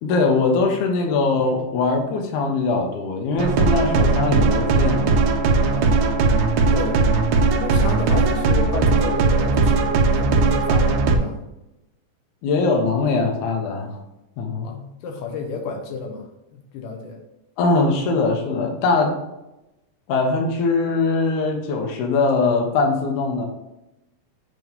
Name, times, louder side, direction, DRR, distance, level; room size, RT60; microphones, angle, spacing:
voice 1, 0.0-5.2 12.4-14.0 14.4-14.7 17.6-19.2 20.1-23.5, left 3 dB, 75° left, 3 dB, 2.3 m, -21 dB
sound 1, 3.4-11.2, right 4 dB, 80° right, 2.2 m, -18 dB
voice 2, 5.7-6.1 6.7-7.0 7.6-11.4 14.6-17.2, left 4 dB, 90° left, 3 dB, 2.5 m, -31 dB
7.9 x 3.1 x 5.2 m, 0.94 s
omnidirectional pair, 3.7 m